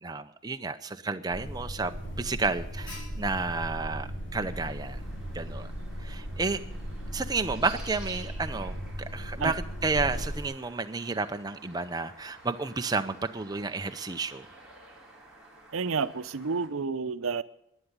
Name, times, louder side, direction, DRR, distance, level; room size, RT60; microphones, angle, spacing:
voice 1, 0.0-5.0 5.3-5.7 6.0-6.6 7.1-14.5, right 3 dB, 20° right, 8 dB, 0.6 m, -31 dB
Alarm, 1.3-10.4, equal, 60° left, 3.5 m, -37 dB
sound 1, 4.5-16.7, right 2 dB, 5° right, 2.9 m, -52 dB
voice 2, 15.7-17.4, right 5 dB, 85° right, 13 dB, 0.6 m, -30 dB
11.5 x 10.0 x 9.7 m, 0.78 s
head